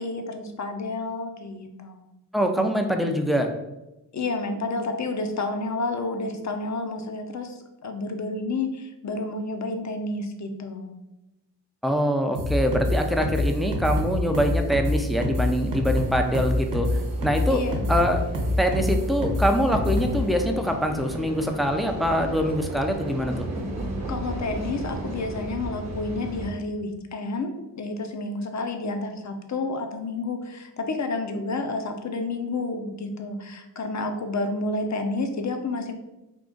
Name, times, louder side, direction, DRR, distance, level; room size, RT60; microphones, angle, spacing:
voice 1, 0.0-2.0 4.1-10.9 17.5-17.9 24.1-35.9, left 2 dB, 40° left, 6 dB, 0.6 m, -30 dB
voice 2, 2.3-3.5 11.8-16.9 17.2-17.6 17.9-18.2 18.6-23.4, equal, ahead, 4 dB, 0.5 m, -24 dB
sound 1, 12.3-20.2, left 1 dB, 85° right, 0.9 m, -25 dB
sound 2, 14.9-26.5, right 1 dB, 40° right, 1.0 m, -35 dB
3.7 x 2.4 x 3.8 m, 0.98 s
cardioid pair, 55°, 42 cm